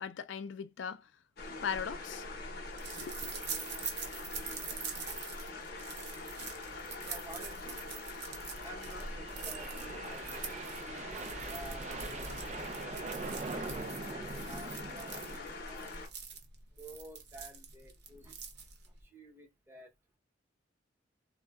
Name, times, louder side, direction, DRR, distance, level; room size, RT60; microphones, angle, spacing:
voice 1, 0.0-1.1 1.6-2.2 3.0-3.3, left 7 dB, 70° left, 0.4 m, -39 dB
sound 1, 1.4-16.1, left 3 dB, 55° left, 0.7 m, -44 dB
sound 2, 1.6-19.0, right 6 dB, 65° right, 0.8 m, -45 dB
sound 3, 3.1-3.2 3.4-3.5 3.9-4.0 4.5-4.7 6.0-15.4, right 3 dB, 40° right, 0.4 m, -44 dB
voice 2, 7.0-8.2 8.6-12.4 13.4-15.9 16.7-18.4 18.8-19.9, right 1 dB, 15° right, 0.8 m, -52 dB
3.6 x 2.1 x 2.3 m
head